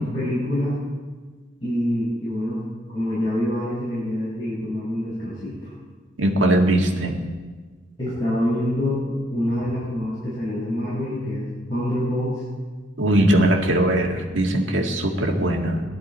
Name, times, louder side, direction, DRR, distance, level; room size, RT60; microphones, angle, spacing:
voice 1, 0.1-0.8 1.6-2.6 2.9-5.7 8.0-12.4, left 1 dB, 30° left, -10 dB, 6.0 m, -26 dB
voice 2, 6.2-7.2 13.0-15.8, right 1 dB, 80° right, 1 dB, 2.0 m, -20 dB
18.5 x 12.5 x 4.3 m, 1.4 s
head